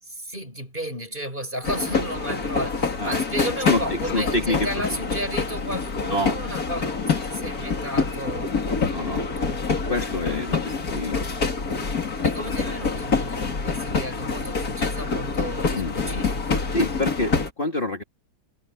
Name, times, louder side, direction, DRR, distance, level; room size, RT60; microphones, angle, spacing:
voice 1, 0.0-8.6 9.4-9.7 12.2-16.7, equal, 30° right, 7.4 m, -33 dB
sound 1, 1.6-17.5, left 4 dB, 60° left, 3.1 m, -26 dB
voice 2, 3.6-5.0 6.1-6.3 8.9-9.3 9.9-11.2 15.8-15.9 16.7-18.0, left 2 dB, 30° left, 2.4 m, -27 dB
omnidirectional pair, 1.8 m